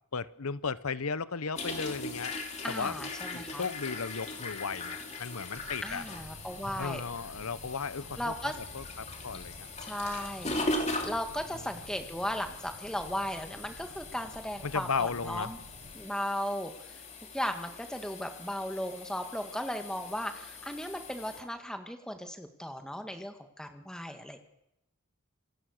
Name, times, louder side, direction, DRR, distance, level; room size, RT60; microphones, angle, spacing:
voice 1, 0.1-2.3 2.7-2.9 3.3-6.0 6.8-9.7 14.6-15.5, left 5 dB, 90° left, 17 dB, 0.9 m, -35 dB
sound 1, 1.6-21.4, left 2 dB, 30° left, 2.8 m, -40 dB
voice 2, 2.6-3.7 5.8-7.0 8.2-8.6 9.8-10.6 11.1-15.6 15.9-17.0 17.3-24.4, equal, 5° left, 6 dB, 1.8 m, -36 dB
sound 2, 5.6-16.0, equal, 70° right, 2.8 m, -52 dB
27.5 x 19.0 x 6.6 m, 0.85 s
head